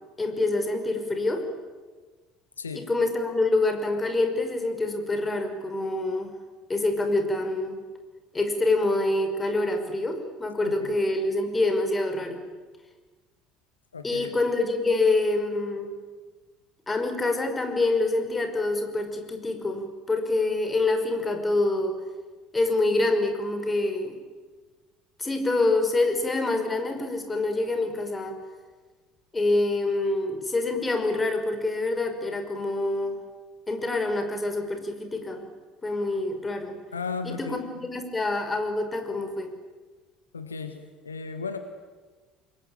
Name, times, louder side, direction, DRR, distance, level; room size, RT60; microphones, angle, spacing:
voice 1, 0.2-1.4 2.7-6.3 6.7-7.8 8.3-12.4 14.0-15.9 16.9-22.0 22.5-24.2 25.2-28.3 29.3-33.2 33.7-35.4 35.8-36.7 37.2-39.5, left 2 dB, 15° left, 6 dB, 5.2 m, -26 dB
voice 2, 10.6-10.9 13.9-14.3 36.9-37.9 40.3-41.6, left 5 dB, 80° left, 8 dB, 1.6 m, -35 dB
27.0 x 22.5 x 9.1 m, 1.4 s
figure-of-eight pair, 60°, 0 cm